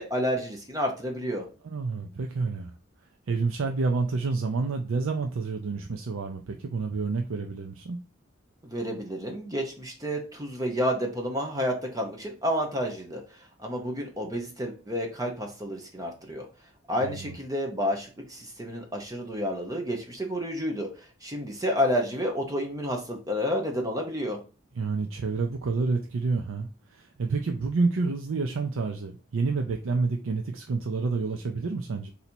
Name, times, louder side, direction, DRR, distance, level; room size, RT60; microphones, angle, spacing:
voice 1, 0.0-1.5 8.6-16.5 16.9-24.4, equal, 15° right, 2 dB, 0.8 m, -30 dB
voice 2, 1.6-2.8 3.3-8.0 17.0-17.4 24.7-32.1, right 4 dB, 80° right, 4 dB, 0.5 m, -29 dB
4.0 x 2.8 x 4.3 m, 0.34 s
head